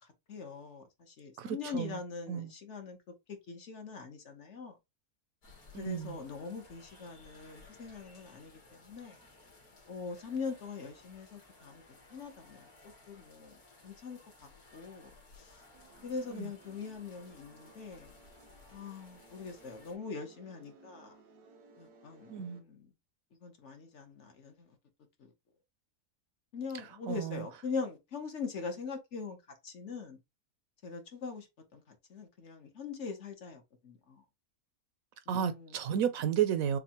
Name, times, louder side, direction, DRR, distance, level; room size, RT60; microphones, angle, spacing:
voice 1, 0.0-3.0 3.5-4.7 5.8-9.2 9.9-13.6 13.8-14.2 14.7-15.6 16.0-18.1 18.7-21.2 21.8-22.9 23.4-24.7 26.5-29.4 29.6-30.2 30.8-31.5 31.7-34.2 35.3-35.8, left 5 dB, 55° left, 1.2 m, -42 dB
voice 2, 1.4-2.0 2.3-2.5 5.7-6.2 16.3-16.5 22.3-22.6 27.1-27.5 35.3-36.8, right 9 dB, 70° right, 1.0 m, -32 dB
sound 1, 5.4-20.0, left 2 dB, 85° left, 2.4 m, -59 dB
sound 2, 15.7-22.6, right 3 dB, 90° right, 1.5 m, -60 dB
6.5 x 2.3 x 2.9 m
omnidirectional pair, 1.6 m